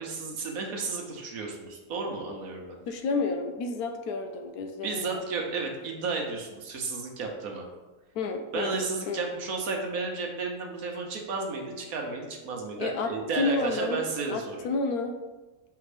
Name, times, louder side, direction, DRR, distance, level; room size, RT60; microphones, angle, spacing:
voice 1, 0.0-2.8 4.8-7.7 8.5-14.7, right 4 dB, 65° right, 1 dB, 1.3 m, -33 dB
voice 2, 2.9-5.2 8.1-8.8 9.1-9.2 12.8-14.0 14.3-15.1, left 3 dB, 70° left, 6 dB, 1.0 m, -30 dB
5.6 x 3.5 x 4.9 m, 1.2 s
omnidirectional pair, 1.7 m